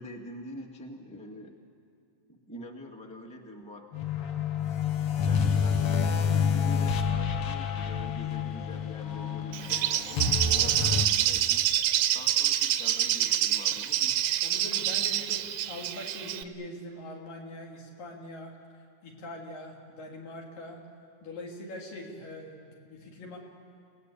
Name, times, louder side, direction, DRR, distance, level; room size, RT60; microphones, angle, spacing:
voice 1, 0.0-1.6 2.3-4.1 5.2-11.6 12.1-14.2, left 1 dB, 5° left, 3 dB, 0.8 m, -45 dB
sound 1, 3.9-11.0, left 6 dB, 60° left, 1.7 m, -28 dB
Bird, 9.5-16.4, right 12 dB, 85° right, 1.5 m, -27 dB
voice 2, 14.4-20.8 21.2-23.4, left 1 dB, 90° left, -1 dB, 4.8 m, -43 dB
28.5 x 18.5 x 8.4 m, 2.3 s
omnidirectional pair, 3.8 m